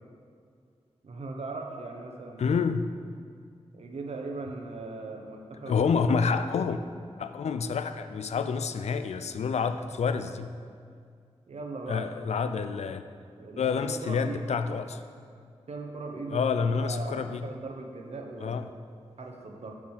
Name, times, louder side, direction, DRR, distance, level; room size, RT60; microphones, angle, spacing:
voice 1, 1.0-2.6 3.7-5.9 7.4-7.6 11.5-12.1 13.4-14.5 15.7-18.7 19.2-19.8, right 3 dB, 70° right, 2 dB, 1.0 m, -39 dB
voice 2, 2.4-2.9 5.7-6.8 7.2-10.5 11.9-13.0 13.6-15.0 16.3-17.4 18.4-18.7, left 5 dB, 75° left, 10 dB, 0.4 m, -28 dB
7.1 x 4.9 x 6.3 m, 2.2 s
cardioid pair, 45°, 11 cm